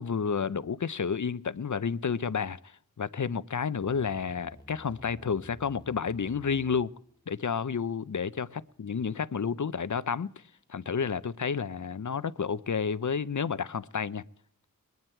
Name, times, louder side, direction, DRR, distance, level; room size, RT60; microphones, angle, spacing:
voice 1, 0.0-6.9 7.3-10.3 10.7-14.2, left 6 dB, 60° left, 0.6 m, -31 dB
sound 1, 3.8-9.7, equal, 10° left, 2.1 m, -55 dB
22.5 x 9.4 x 4.4 m
wide cardioid pair, 40°, 34 cm